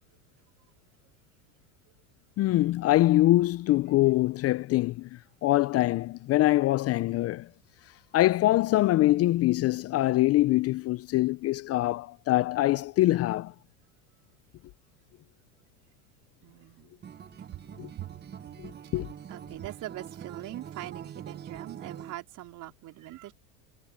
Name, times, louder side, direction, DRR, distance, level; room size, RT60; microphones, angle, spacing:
voice 1, 2.4-5.1 5.4-7.5 8.1-13.5 17.8-17.9 18.6-19.1, left 16 dB, 40° left, 0.6 m, -24 dB
voice 2, 16.4-17.0 18.0-18.2 19.3-23.3, right 16 dB, 50° right, 4.4 m, -42 dB
Acoustic guitar, 17.0-22.2, right 8 dB, 25° right, 1.1 m, -44 dB
hypercardioid pair, 100°, 40 cm